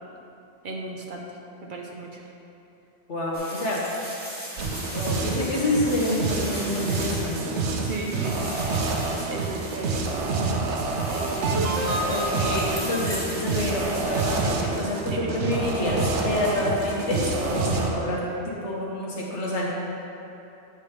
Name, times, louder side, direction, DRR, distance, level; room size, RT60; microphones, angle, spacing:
voice 1, 0.6-1.3 1.6-2.1 7.7-8.5 9.3-10.0 11.1-11.9 15.1-15.3, right 3 dB, 55° right, 0 dB, 0.7 m, -35 dB
voice 2, 3.1-3.8 4.9-7.6 12.1-19.7, left 1 dB, 80° left, -4 dB, 1.5 m, -27 dB
sound 1, 3.3-14.4, equal, 15° right, 1.5 m, -38 dB
sound 2, 4.6-17.9, right 3 dB, 85° right, 1.0 m, -27 dB
8.3 x 3.4 x 5.7 m, 2.8 s
omnidirectional pair, 1.2 m